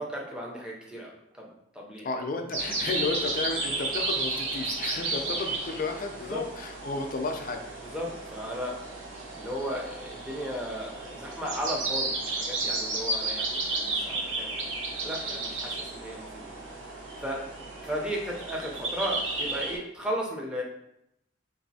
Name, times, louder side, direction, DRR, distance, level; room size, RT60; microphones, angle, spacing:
voice 1, 0.0-2.1 5.1-5.3 6.3-6.4 7.8-8.8 9.4-16.4 16.7-17.4 17.8-20.6, equal, 5° right, -2 dB, 0.5 m, -35 dB
voice 2, 2.0-7.6, left 3 dB, 45° left, 4 dB, 0.4 m, -32 dB
sound 1, 2.5-19.8, right 2 dB, 75° right, 0.8 m, -33 dB
4.0 x 2.6 x 2.7 m, 0.80 s
head